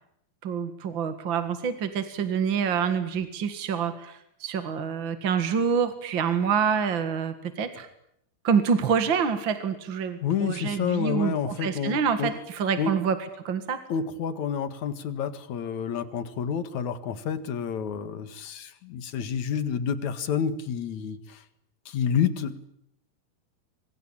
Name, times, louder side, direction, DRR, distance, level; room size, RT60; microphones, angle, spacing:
voice 1, 0.4-7.9 8.4-13.2 13.4-13.8, right 6 dB, 45° right, 9 dB, 1.7 m, -27 dB
voice 2, 10.2-12.3 12.8-13.0 13.9-21.4 21.9-22.6, left 7 dB, 55° left, 12 dB, 2.6 m, -29 dB
26.0 x 24.0 x 8.7 m, 0.76 s
omnidirectional pair, 4.6 m